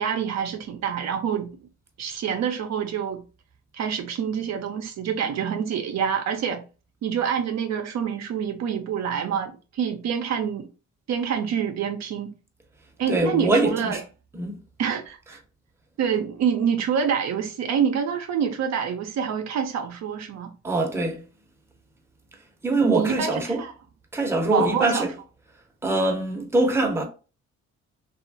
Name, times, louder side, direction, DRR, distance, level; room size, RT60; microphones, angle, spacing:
voice 1, 0.0-1.6 2.0-3.2 3.7-6.6 7.0-10.7 11.1-12.3 13.0-14.0 14.8-15.4 16.0-20.5 22.8-23.7 24.4-25.0, right 7 dB, 60° right, 0.5 m, -26 dB
voice 2, 13.1-14.0 14.3-14.6 20.6-21.2 22.6-23.6 24.1-25.1 25.8-27.0, right 2 dB, 10° right, 0.7 m, -23 dB
2.8 x 2.3 x 2.6 m
cardioid pair, 90°, 30 cm